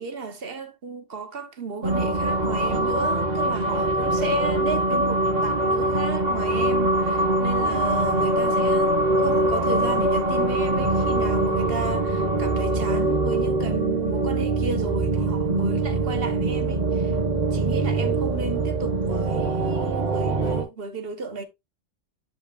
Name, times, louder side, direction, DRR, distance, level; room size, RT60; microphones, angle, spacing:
voice 1, 0.0-17.2 17.5-21.4, right 4 dB, 55° right, 1.3 m, -33 dB
sound 1, 1.8-20.6, right 2 dB, 35° right, 1.8 m, -23 dB
10.0 x 5.3 x 2.4 m
omnidirectional pair, 1.2 m